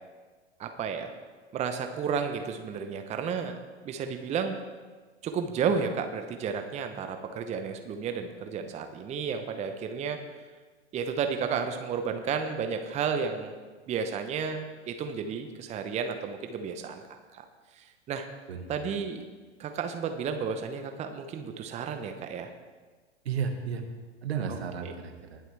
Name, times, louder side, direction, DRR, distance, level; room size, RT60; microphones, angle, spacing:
voice 1, 0.6-1.1 1.5-3.6 3.8-4.5 5.2-10.2 10.9-13.5 13.9-17.4 17.7-18.3 18.7-19.2 19.6-22.5 24.8-24.9, right 6 dB, 20° right, 7 dB, 0.8 m, -32 dB
voice 2, 18.5-18.9 23.3-23.8 24.2-25.4, right 6 dB, 70° right, 5 dB, 1.7 m, -33 dB
20.0 x 7.7 x 3.4 m, 1.4 s
hypercardioid pair, 105°, 33 cm